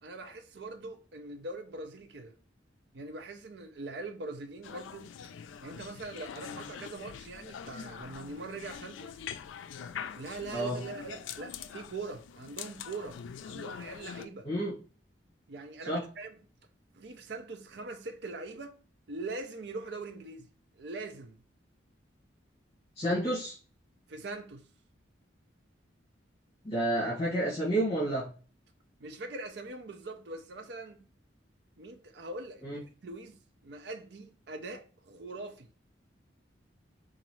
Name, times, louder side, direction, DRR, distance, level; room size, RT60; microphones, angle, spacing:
voice 1, 0.0-2.3 2.9-5.1 5.6-9.1 10.1-14.5 15.5-16.3 16.9-18.8 19.1-20.5 20.8-21.4 24.1-24.6 29.0-31.0 31.8-35.7, right 3 dB, 60° right, 0.5 m, -42 dB
sound 1, 4.6-14.3, left 8 dB, 90° left, 0.3 m, -44 dB
voice 2, 14.4-14.7 15.8-16.0 22.9-23.6 26.6-28.3 32.6-32.8, right 1 dB, 35° left, 1.4 m, -30 dB
3.9 x 2.6 x 3.0 m
head